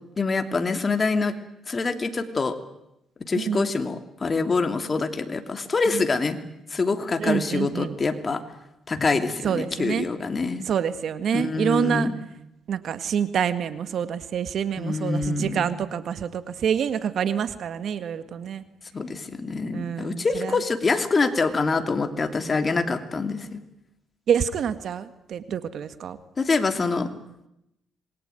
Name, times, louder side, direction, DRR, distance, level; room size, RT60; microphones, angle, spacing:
voice 1, 0.2-1.3 1.7-2.6 3.3-6.4 6.7-8.4 8.9-10.7 11.3-12.1 14.8-15.8 18.9-23.6 26.4-27.1, left 4 dB, 35° left, 8 dB, 2.9 m, -25 dB
voice 2, 3.3-3.7 5.9-6.0 7.2-8.0 9.4-10.1 10.6-12.1 12.7-18.6 19.7-20.6 24.3-26.2, right 8 dB, 65° right, 12 dB, 1.9 m, -27 dB
27.0 x 22.0 x 9.3 m, 0.84 s
cardioid pair, 90°, 0 cm